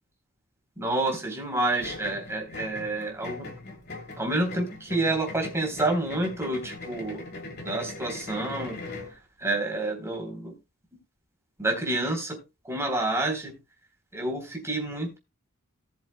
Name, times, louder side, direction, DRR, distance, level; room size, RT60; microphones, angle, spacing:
voice 1, 0.8-3.5 4.2-7.2 7.6-8.8 9.4-10.5 11.6-12.4 12.6-13.6 14.1-15.2, right 2 dB, 15° right, 1 dB, 3.6 m, -28 dB
sound 1, 1.8-9.2, left 2 dB, 50° left, 2.8 m, -40 dB
18.5 x 7.3 x 2.2 m, 0.25 s
head